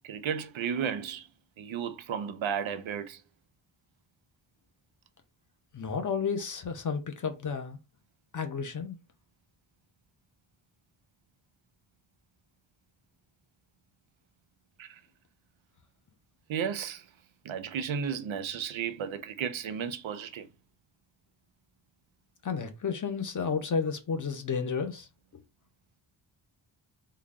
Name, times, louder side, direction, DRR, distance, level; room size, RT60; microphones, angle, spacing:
voice 1, 0.0-1.3 1.6-3.2 14.8-15.0 16.5-17.1 17.4-20.5, right 7 dB, 80° right, 0.6 m, -33 dB
voice 2, 5.7-7.8 8.3-9.0 22.4-25.1, left 5 dB, 40° left, 0.7 m, -32 dB
3.8 x 2.2 x 3.5 m
wide cardioid pair, 165°, 46 cm